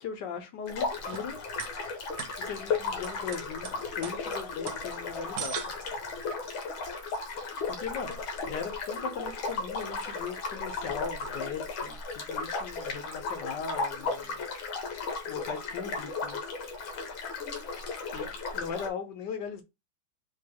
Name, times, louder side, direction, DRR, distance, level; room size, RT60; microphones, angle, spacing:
voice 1, 0.0-1.4 2.4-5.7 7.7-14.5 15.3-16.5 18.1-19.6, left 6 dB, 65° left, 1.3 m, -39 dB
sound 1, 0.7-18.9, left 4 dB, 85° left, 1.8 m, -35 dB
sound 2, 0.9-6.3, right 8 dB, 90° right, 1.4 m, -42 dB
4.5 x 2.9 x 3.4 m
omnidirectional pair, 2.2 m